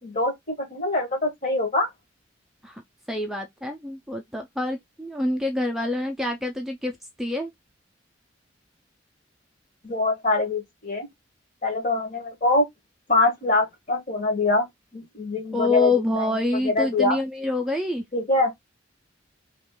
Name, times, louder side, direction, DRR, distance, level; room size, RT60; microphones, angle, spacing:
voice 1, 0.0-1.9 9.8-11.1 11.6-12.7 13.1-14.7 14.9-15.9 16.2-16.3 16.6-17.2 18.1-18.5, left 2 dB, 45° left, 1.2 m, -24 dB
voice 2, 3.1-7.5 15.5-18.0, left 2 dB, ahead, 0.4 m, -26 dB
2.9 x 2.4 x 3.5 m
head